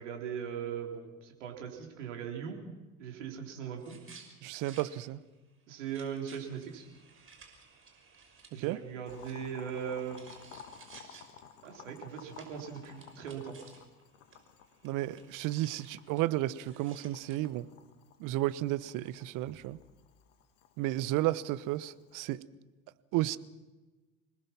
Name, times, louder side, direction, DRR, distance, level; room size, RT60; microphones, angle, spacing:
voice 1, 0.0-2.6 3.0-4.0 5.7-6.9 8.5-10.2 11.6-13.6, right 8 dB, 75° right, 2 dB, 4.3 m, -39 dB
sound 1, 3.8-4.9 5.2-5.3 5.7-14.0 14.3-14.4 14.6-17.4, right 5 dB, 35° right, 5.8 m, -57 dB
voice 2, 4.4-5.2 8.5-8.8 14.8-17.7 18.2-19.8 20.8-22.4 23.1-23.4, right 16 dB, 55° right, 17 dB, 1.1 m, -32 dB
Boiling, 9.1-22.3, left 8 dB, 75° left, 2.3 m, -55 dB
26.5 x 20.0 x 6.0 m, 1.2 s
hypercardioid pair, 65°, 37 cm